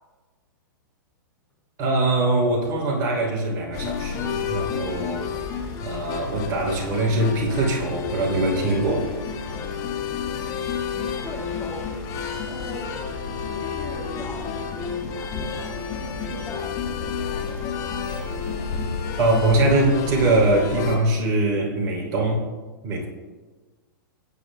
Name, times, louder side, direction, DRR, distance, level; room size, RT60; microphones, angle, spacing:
voice 1, 1.8-5.3 5.8-9.1 19.2-22.4 22.8-23.1, right 2 dB, 35° right, -1 dB, 3.2 m, -22 dB
sound 1, 3.7-21.0, left 6 dB, 35° left, 1.9 m, -30 dB
voice 2, 10.2-10.6 10.9-11.9 12.5-13.0 13.4-16.7 17.0-18.0, left 2 dB, 15° left, -2 dB, 1.8 m, -40 dB
18.0 x 9.8 x 2.2 m, 1.3 s
hypercardioid pair, 115°, 11 cm